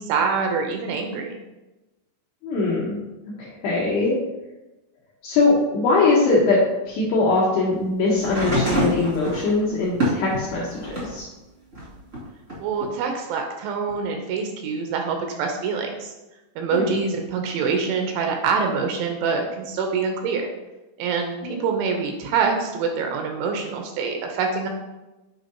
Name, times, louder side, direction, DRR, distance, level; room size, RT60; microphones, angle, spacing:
voice 1, 0.0-1.4 12.6-16.1 16.6-20.5 21.0-24.7, right 5 dB, 85° right, 3 dB, 3.0 m, -25 dB
voice 2, 2.4-3.0 3.4-4.2 5.2-6.6 6.9-11.3 16.7-17.0 21.4-21.6, left 3 dB, 75° left, -5 dB, 2.3 m, -21 dB
sound 1, 8.2-11.2 11.7-12.9 13.9-14.0, equal, 40° right, 1.0 m, -26 dB
9.0 x 5.0 x 2.8 m, 1.0 s
omnidirectional pair, 5.7 m